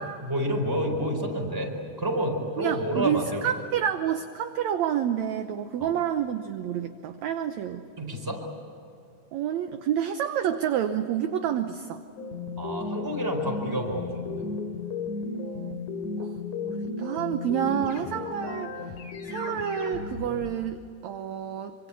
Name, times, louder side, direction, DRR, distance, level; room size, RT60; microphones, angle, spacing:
voice 1, 0.3-1.7 2.0-3.5 5.8-5.9 8.0-8.4 12.6-14.4, equal, 5° right, 1 dB, 4.3 m, -29 dB
voice 2, 2.6-7.8 9.3-12.0 15.4-15.8 16.2-16.3 16.6-18.8 19.2-21.7, right 9 dB, 70° right, 7 dB, 2.0 m, -29 dB
sound 1, 12.2-20.5, left 4 dB, 60° left, 3.6 m, -34 dB
25.5 x 25.5 x 8.5 m, 2.6 s
omnidirectional pair, 3.8 m